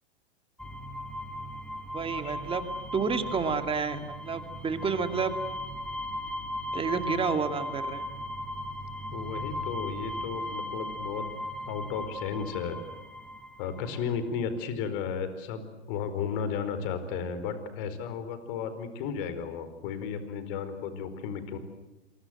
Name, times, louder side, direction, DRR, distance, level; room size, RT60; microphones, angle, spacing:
sound 1, 0.6-14.0, left 1 dB, 5° left, 3.0 m, -37 dB
voice 1, 1.9-2.7 2.9-5.4 6.7-8.1, right 5 dB, 15° right, 8 dB, 2.4 m, -30 dB
voice 2, 9.1-11.2 11.7-12.8 13.6-21.6, left 6 dB, 50° left, 11 dB, 4.6 m, -34 dB
28.0 x 23.5 x 7.9 m, 1.0 s
hypercardioid pair, 125°, 33 cm